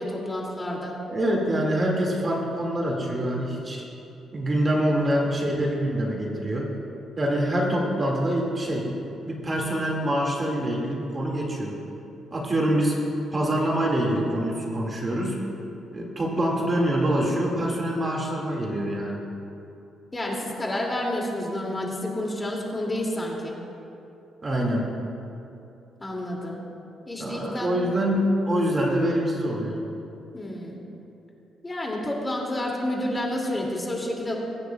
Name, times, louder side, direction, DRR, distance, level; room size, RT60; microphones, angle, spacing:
voice 1, 0.0-0.9 20.1-23.5 26.0-26.6 27.1-27.7 30.3-30.8 31.6-34.3, left 1 dB, 20° left, -2 dB, 2.4 m, -29 dB
voice 2, 1.1-3.8 4.3-6.7 7.2-8.9 9.3-11.7 12.3-13.0 13.3-15.4 15.9-19.2 24.4-24.9 27.2-29.8, right 1 dB, 30° right, -1 dB, 2.0 m, -25 dB
22.0 x 9.7 x 2.3 m, 2.8 s
cardioid pair, 90°, 0 cm